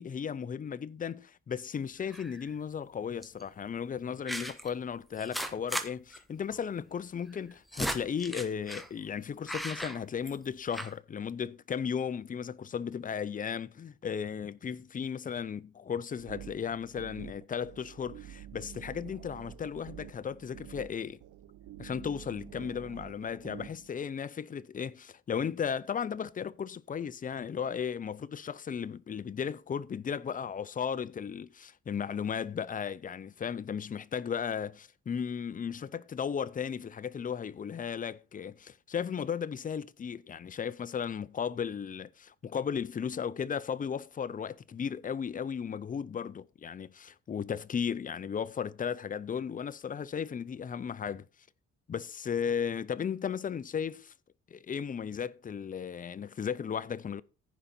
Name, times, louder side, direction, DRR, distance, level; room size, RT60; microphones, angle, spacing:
voice 1, 0.0-21.2 21.8-51.3 51.9-54.1 54.5-57.2, left 7 dB, 30° left, 0.5 m, -35 dB
sound 1, 2.1-2.5 3.2-3.4 4.3-4.7 5.2-5.9 6.1-6.2 6.5-6.6 7.3-8.9 9.5-10.5 10.7-10.9, equal, ahead, 1.0 m, -37 dB
sound 2, 16.2-23.9, right 11 dB, 80° right, 0.9 m, -48 dB
14.5 x 5.1 x 4.3 m
cardioid pair, 90°, 30 cm